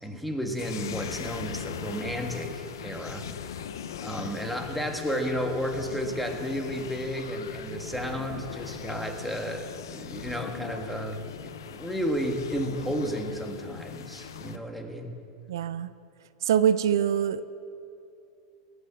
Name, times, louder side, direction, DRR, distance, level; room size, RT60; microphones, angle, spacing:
voice 1, 0.0-3.5 4.0-15.2, equal, ahead, 3 dB, 1.4 m, -32 dB
sound 1, 0.6-14.6, left 8 dB, 90° left, 0.6 m, -39 dB
voice 2, 15.5-15.9 16.4-17.4, right 9 dB, 85° right, 14 dB, 0.4 m, -24 dB
17.0 x 6.3 x 7.5 m, 2.6 s
supercardioid pair, 115°, 2 cm